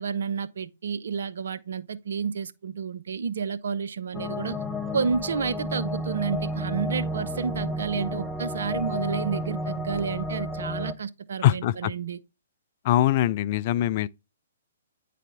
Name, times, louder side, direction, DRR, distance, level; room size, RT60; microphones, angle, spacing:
voice 1, 0.0-4.6 4.9-12.2, right 6 dB, 65° right, 0.6 m, -30 dB
sound 1, 4.1-10.9, equal, 5° right, 0.7 m, -32 dB
voice 2, 11.4-11.9 12.8-14.1, left 13 dB, 45° left, 0.3 m, -22 dB
9.2 x 4.2 x 3.3 m
figure-of-eight pair, 125°, 0 cm